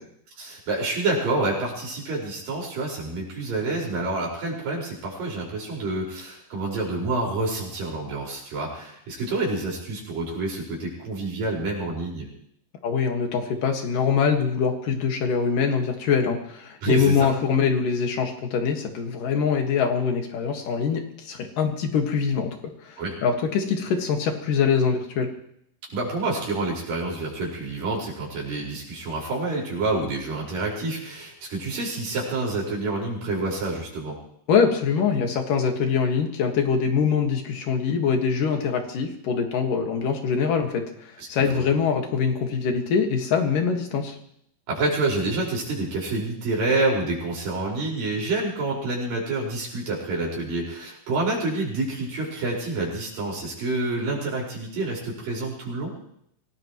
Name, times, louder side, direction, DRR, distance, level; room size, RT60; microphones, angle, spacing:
voice 1, 0.4-12.3 16.8-17.3 23.0-23.2 25.9-34.2 41.2-41.3 41.5-41.6 44.7-55.9, right 2 dB, 75° right, -3 dB, 6.9 m, -28 dB
voice 2, 12.8-22.5 22.8-25.3 34.5-44.2, left 6 dB, 70° left, 4 dB, 3.4 m, -23 dB
25.0 x 18.5 x 3.1 m, 0.70 s
omnidirectional pair, 4.0 m